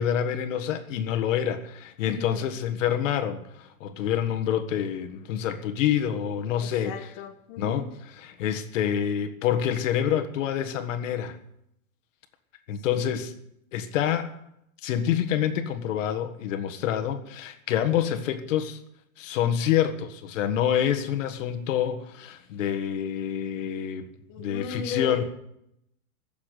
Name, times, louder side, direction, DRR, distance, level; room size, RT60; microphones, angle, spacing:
voice 1, 0.0-7.1 7.6-11.4 12.7-13.3 13.7-14.3 14.8-18.8 19.2-24.1 24.4-25.2, left 9 dB, 55° left, 8 dB, 1.7 m, -27 dB
voice 2, 2.0-2.5 6.6-7.9 12.9-13.1 24.3-25.2, left 7 dB, 25° left, 3 dB, 1.1 m, -36 dB
15.5 x 7.2 x 8.4 m, 0.78 s
supercardioid pair, 160°, 45 cm